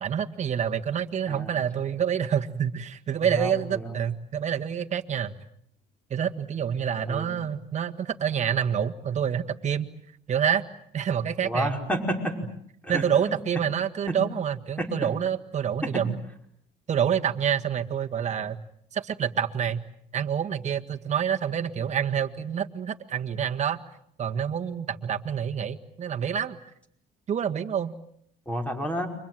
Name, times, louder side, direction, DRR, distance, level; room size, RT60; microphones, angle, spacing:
voice 1, 0.0-5.4 6.1-9.9 10.3-10.6 10.9-11.8 12.9-16.2 16.9-18.6 18.9-19.8 20.1-23.8 24.2-26.6 27.3-27.9, right 8 dB, 45° right, 6 dB, 1.8 m, -27 dB
voice 2, 3.2-4.0 7.1-7.3 11.4-12.5 12.8-13.3 14.1-14.2 14.8-14.9 15.8-16.1 28.5-29.1, equal, 10° left, 4 dB, 5.2 m, -30 dB
29.5 x 25.5 x 7.7 m, 0.69 s
cardioid pair, 110°, 17 cm